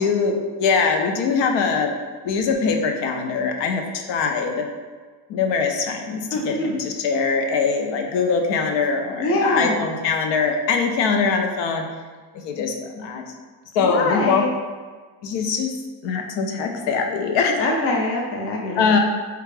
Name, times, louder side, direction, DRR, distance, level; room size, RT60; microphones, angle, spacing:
voice 1, 0.0-1.9 2.2-4.7 5.3-11.9 12.3-13.2 13.7-14.5 15.2-15.7 16.0-17.6 18.8-19.0, left 5 dB, 85° left, 3 dB, 0.5 m, -22 dB
voice 2, 6.3-6.7 9.2-9.8 13.8-14.5 17.6-18.9, left 2 dB, 35° left, 0 dB, 0.4 m, -23 dB
3.3 x 2.4 x 3.2 m, 1.4 s
cardioid pair, 160°, 41 cm